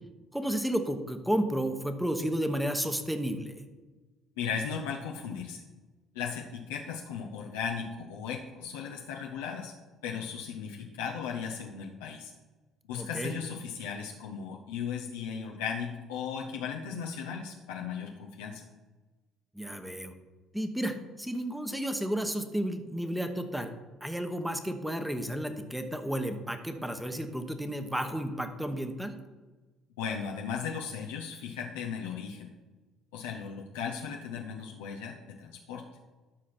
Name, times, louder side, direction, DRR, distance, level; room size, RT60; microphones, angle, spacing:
voice 1, 0.3-3.6 13.0-13.3 19.5-20.1 20.5-23.7 24.0-29.2, right 1 dB, 5° right, 7 dB, 1.1 m, -32 dB
voice 2, 4.4-5.6 6.1-9.7 10.0-12.3 12.9-18.6 30.0-32.5 33.1-35.8, left 6 dB, 90° left, 1 dB, 0.7 m, -36 dB
12.5 x 5.0 x 4.4 m, 1.2 s
supercardioid pair, 75°, 0 cm